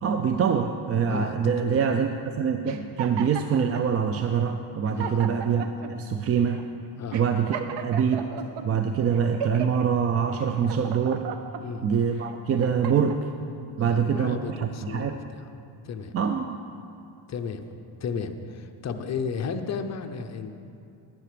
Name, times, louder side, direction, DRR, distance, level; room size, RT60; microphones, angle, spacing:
voice 1, 0.0-6.6 7.1-8.3 8.6-11.3 11.8-13.2 13.8-15.2 16.1-16.6, right 7 dB, 35° right, 6 dB, 0.4 m, -25 dB
voice 2, 1.1-1.8 4.9-5.2 7.0-7.2 11.6-11.9 13.8-15.5 15.8-16.1 17.3-17.7 18.0-20.5, left 5 dB, 35° left, 7 dB, 0.7 m, -34 dB
sound 1, 2.6-3.9 4.5-4.6 4.8-5.9 6.5-6.6 7.1-8.6 9.1-9.8 10.4-11.6 12.2-13.2, right 7 dB, 70° right, 0.8 m, -36 dB
10.5 x 9.8 x 5.0 m, 2.6 s
cardioid pair, 120°, 46 cm